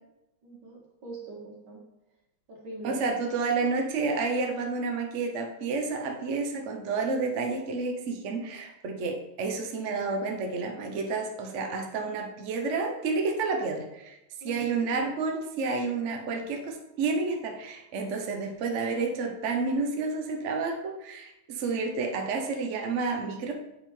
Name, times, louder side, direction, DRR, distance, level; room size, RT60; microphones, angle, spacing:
voice 1, 0.4-1.8 2.5-3.0 14.4-14.8, right 2 dB, 75° right, -4 dB, 2.5 m, -42 dB
voice 2, 2.8-14.2 14.4-23.5, right 4 dB, 50° right, 2 dB, 0.9 m, -30 dB
8.0 x 3.7 x 4.4 m, 0.91 s
omnidirectional pair, 2.3 m